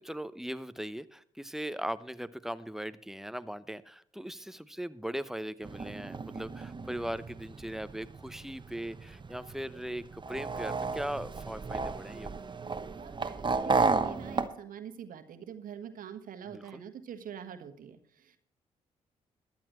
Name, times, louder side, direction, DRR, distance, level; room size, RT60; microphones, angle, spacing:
voice 1, 0.0-12.3 16.5-16.8, equal, ahead, 15 dB, 0.8 m, -39 dB
sound 1, 5.6-14.5, right 4 dB, 30° right, 1.0 m, -33 dB
voice 2, 12.9-18.4, right 8 dB, 55° right, 8 dB, 1.4 m, -45 dB
22.5 x 8.6 x 3.1 m, 0.65 s
figure-of-eight pair, 40°, 17 cm